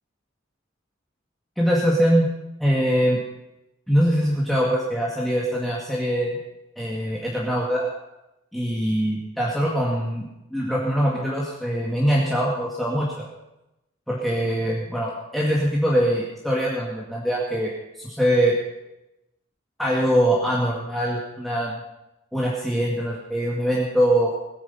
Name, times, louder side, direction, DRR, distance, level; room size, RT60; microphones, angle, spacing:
voice 1, 1.6-2.3 2.6-3.2 3.9-6.4 6.8-7.9 8.5-10.2 10.5-13.3 14.1-17.7 18.0-18.6 19.8-21.8 22.3-24.3, equal, ahead, -5 dB, 2.1 m, -23 dB
20.5 x 9.5 x 5.7 m, 0.91 s
head